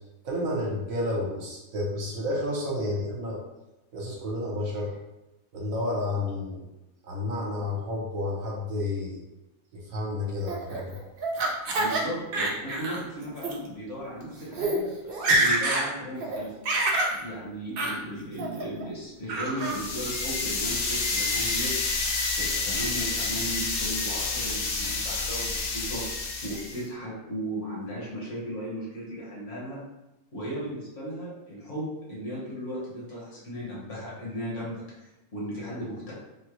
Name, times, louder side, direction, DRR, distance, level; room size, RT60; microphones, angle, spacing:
voice 1, 0.2-3.4 3.9-4.9 5.5-6.6 7.0-9.2 9.7-11.0, left 1 dB, 70° right, -3 dB, 1.1 m, -30 dB
Laughter, 10.5-12.0 12.3-13.0 13.4-13.5 14.2-14.3 14.5-14.8 15.1-15.9 16.2-17.2 17.8-18.0 18.4-18.8 19.3-19.8, right 2 dB, 85° right, 0.4 m, -26 dB
voice 2, 11.7-16.5 17.2-21.7 22.4-26.0 26.4-29.8 30.3-36.1, equal, 55° left, -6 dB, 1.4 m, -36 dB
sound 1, 19.6-26.8, left 3 dB, 70° left, 0.5 m, -29 dB
3.6 x 2.0 x 3.0 m, 0.98 s
omnidirectional pair, 1.6 m